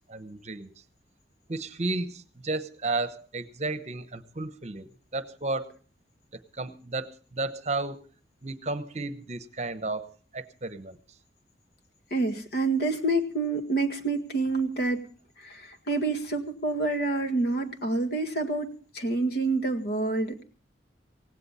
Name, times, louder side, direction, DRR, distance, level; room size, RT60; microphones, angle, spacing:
voice 1, 0.1-0.7 1.5-5.7 6.3-8.0 8.4-11.0, right 2 dB, 40° right, 12 dB, 1.0 m, -33 dB
voice 2, 12.1-15.0 15.4-20.4, right 2 dB, 60° left, 6 dB, 2.0 m, -28 dB
17.5 x 16.5 x 4.2 m, 0.39 s
head